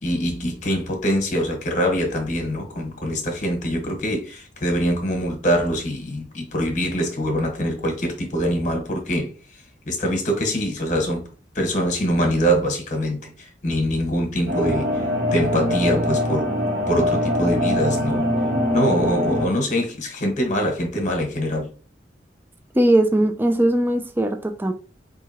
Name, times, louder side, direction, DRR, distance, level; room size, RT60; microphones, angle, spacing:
voice 1, 0.0-9.3 9.9-11.2 11.5-14.9 15.3-16.5 16.9-18.2 18.7-21.7, equal, 40° left, 1.2 m, -23 dB
sound 1, 14.5-19.5, left 1 dB, 65° right, 1.4 m, -23 dB
voice 2, 22.7-24.7, right 1 dB, 10° right, 0.3 m, -19 dB
4.8 x 2.8 x 2.8 m
head